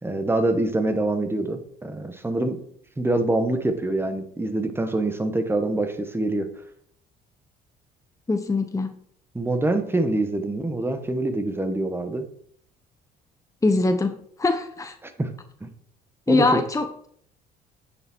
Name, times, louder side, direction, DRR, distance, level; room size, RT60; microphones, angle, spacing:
voice 1, 0.0-2.6 3.0-6.5 9.3-12.2 15.0-15.3 15.6-15.7 16.3-16.6, right 2 dB, 10° right, 7 dB, 1.6 m, -25 dB
voice 2, 8.3-8.9 13.6-15.0 16.3-17.1, left 3 dB, 15° left, 7 dB, 1.0 m, -22 dB
9.4 x 6.8 x 4.7 m, 0.63 s
supercardioid pair, 80°, 19 cm